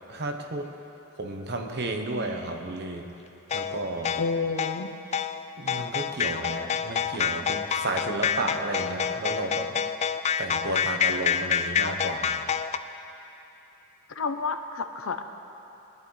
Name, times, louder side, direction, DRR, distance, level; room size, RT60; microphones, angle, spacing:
voice 1, 0.1-0.7 1.2-3.1 3.5-4.2 5.6-9.8 10.4-12.4, right 2 dB, 55° right, 4 dB, 1.1 m, -32 dB
sound 1, 3.5-12.8, left 7 dB, 30° left, 0.3 m, -27 dB
voice 2, 4.2-4.9 14.2-15.2, left 4 dB, 80° left, 7 dB, 0.8 m, -29 dB
21.5 x 11.0 x 3.3 m, 3.0 s
head